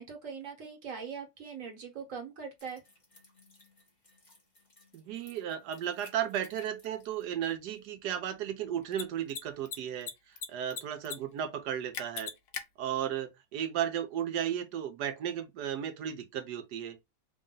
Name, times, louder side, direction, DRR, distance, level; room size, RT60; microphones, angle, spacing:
voice 1, 0.0-2.8, right 6 dB, 50° right, 1.4 m, -41 dB
sound 1, 2.6-7.5 7.8-7.9, left 1 dB, 30° left, 1.2 m, -60 dB
voice 2, 4.9-12.3 12.8-17.0, right 9 dB, 70° right, 1.2 m, -34 dB
Mechanisms, 6.4-6.5 8.8-9.0 9.3-9.4 9.7-10.5 10.7-11.2 11.4-11.5 11.9-12.6, left 7 dB, 75° left, 1.3 m, -37 dB
3.6 x 2.5 x 3.7 m
omnidirectional pair, 1.9 m